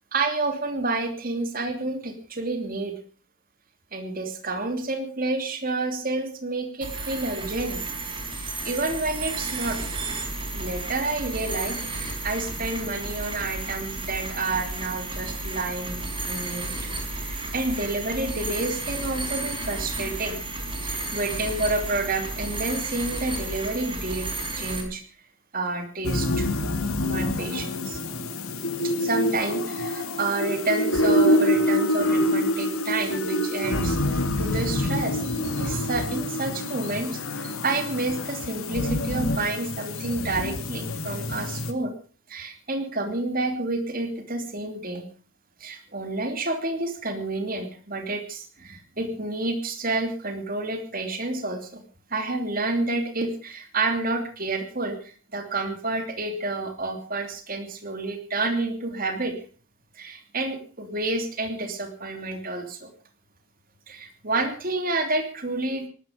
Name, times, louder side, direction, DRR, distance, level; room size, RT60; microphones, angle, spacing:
voice 1, 0.1-2.9 3.9-7.8 8.3-10.0 10.5-16.7 17.1-20.4 20.8-25.0 25.5-26.5 27.0-28.0 28.8-41.9 42.3-45.1 45.6-59.4 59.9-62.9 63.9-65.9, right 2 dB, 45° right, 5 dB, 3.0 m, -29 dB
sound 1, 6.8-24.8, right 2 dB, 25° right, 4.0 m, -32 dB
sound 2, 26.0-41.7, left 1 dB, 90° left, 2.2 m, -26 dB
19.5 x 13.0 x 5.3 m, 0.40 s
head